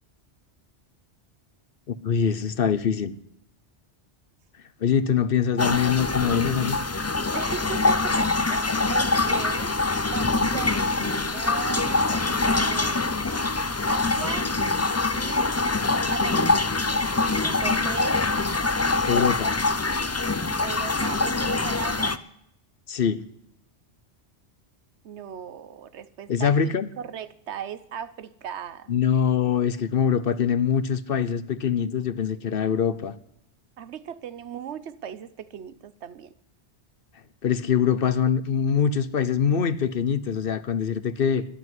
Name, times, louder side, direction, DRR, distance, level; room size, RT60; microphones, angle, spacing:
voice 1, 1.9-3.1 4.8-6.8 19.1-19.5 22.9-23.2 26.3-26.9 28.9-33.1 37.4-41.5, left 7 dB, 60° left, 1.0 m, -23 dB
sound 1, 5.6-22.2, left 3 dB, 20° left, 0.4 m, -24 dB
voice 2, 7.3-13.4 13.9-14.5 15.1-15.7 16.1-16.7 17.4-18.2 20.6-22.2 25.0-26.5 27.0-28.9 33.8-36.3, right 8 dB, 80° right, 1.1 m, -37 dB
12.5 x 10.5 x 9.6 m
omnidirectional pair, 1.1 m